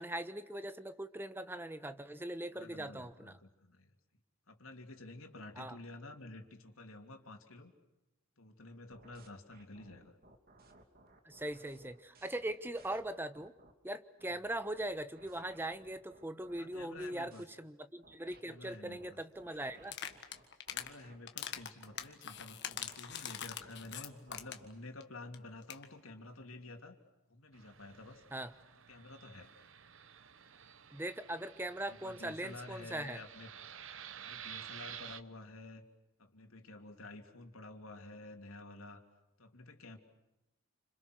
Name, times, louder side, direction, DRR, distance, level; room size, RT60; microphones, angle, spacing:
voice 1, 0.0-3.4 5.6-5.8 11.2-13.5 13.8-17.3 17.6-19.9 28.3-28.5 30.9-33.2, right 1 dB, 10° right, 11 dB, 1.1 m, -40 dB
voice 2, 2.5-3.9 4.5-7.7 8.4-10.2 14.3-14.4 16.6-17.4 18.4-19.2 20.7-27.0 27.3-28.2 28.9-29.5 31.9-33.5 34.2-35.8 36.2-39.0 39.4-40.0, left 2 dB, 75° left, 4 dB, 3.1 m, -51 dB
sound 1, 8.9-13.7 14.2-17.4 18.0-24.7, right 2 dB, 45° right, 3.0 m, -62 dB
sound 2, 19.8-20.9 21.3-24.7 25.0-25.1 25.3-25.4 25.6-25.9, left 9 dB, 55° left, 1.6 m, -42 dB
Fixed-wing aircraft airplane, 27.5-35.2, right 9 dB, 65° right, 0.9 m, -51 dB
29.5 x 26.5 x 6.3 m, 0.95 s
head